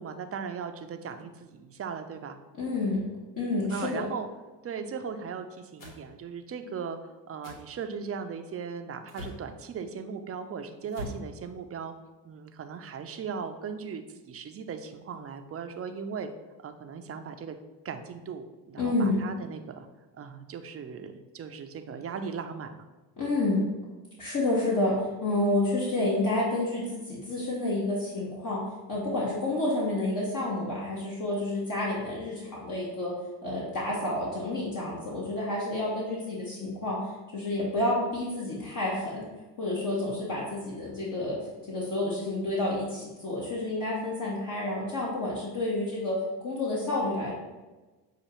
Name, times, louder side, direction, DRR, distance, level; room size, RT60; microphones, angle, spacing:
voice 1, 0.0-2.4 3.7-4.3 4.6-11.9 12.2-16.3 16.6-17.6 17.8-19.9 20.1-22.9, right 6 dB, 35° right, 7 dB, 0.5 m, -38 dB
voice 2, 2.6-3.0 3.4-4.0 18.8-19.2 23.2-23.7 24.2-28.6 28.9-33.1 33.4-37.0 37.3-39.3 39.6-41.4 41.7-46.1 46.4-47.3, left 2 dB, 45° left, -6 dB, 1.3 m, -29 dB
sound 1, 5.8-6.0 7.4-7.6 9.1-9.4 10.9-11.2, left 1 dB, 80° left, 1.4 m, -40 dB
6.6 x 2.4 x 3.0 m, 1.2 s
supercardioid pair, 75°, 42 cm